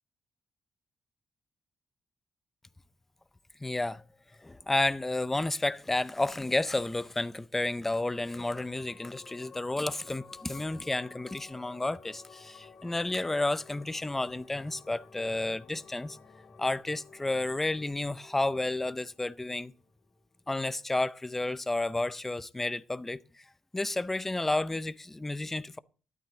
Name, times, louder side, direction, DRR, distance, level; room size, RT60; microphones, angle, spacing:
voice 1, 3.6-4.0 4.4-16.2 16.6-19.7 20.5-23.2 23.7-25.8, left 2 dB, 10° left, 0.5 m, -31 dB
sound 1, 8.0-20.8, left 5 dB, 60° left, 2.3 m, -54 dB
13.0 x 12.0 x 3.7 m
cardioid pair, 130°, 2 cm